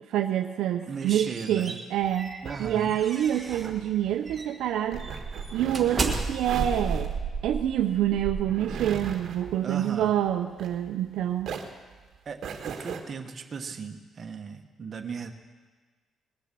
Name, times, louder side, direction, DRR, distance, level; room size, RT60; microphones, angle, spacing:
voice 1, 0.1-2.3 2.6-5.1 5.5-7.1 7.4-11.5, right 11 dB, 85° right, 6 dB, 0.7 m, -27 dB
sound 1, 0.8-3.8 4.3-4.5 4.9-9.2, right 4 dB, 30° right, 1.7 m, -34 dB
voice 2, 0.9-1.8 2.4-3.0 9.6-10.2 12.2-15.3, right 5 dB, 45° right, 5 dB, 1.3 m, -37 dB
sound 2, 2.0-11.1 11.4-13.0, right 6 dB, 65° right, 1.4 m, -39 dB
20.0 x 6.8 x 7.6 m, 1.4 s
cardioid pair, 90°, 0 cm